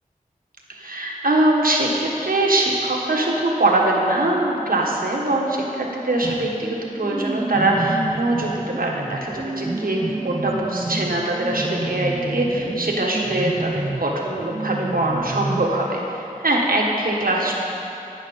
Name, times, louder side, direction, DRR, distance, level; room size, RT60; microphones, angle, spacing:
voice 1, 0.7-10.0 10.2-17.5, right 2 dB, 75° right, -1 dB, 1.4 m, -22 dB
sound 1, 6.2-15.7, right 2 dB, 25° right, 0.4 m, -29 dB
17.5 x 6.1 x 4.1 m, 2.9 s
wide cardioid pair, 40°, 15 cm